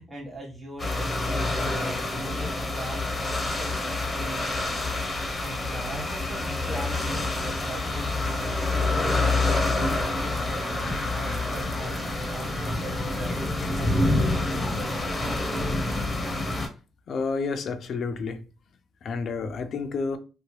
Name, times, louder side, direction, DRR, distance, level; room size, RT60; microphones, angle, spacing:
voice 1, 0.0-15.3, right 1 dB, 10° right, 1.3 m, -41 dB
sound 1, 0.8-16.7, left 2 dB, 20° left, 0.7 m, -27 dB
voice 2, 17.1-18.4 19.0-20.2, left 4 dB, 60° left, 0.4 m, -30 dB
2.8 x 2.2 x 2.9 m
cardioid pair, 90°, 0 cm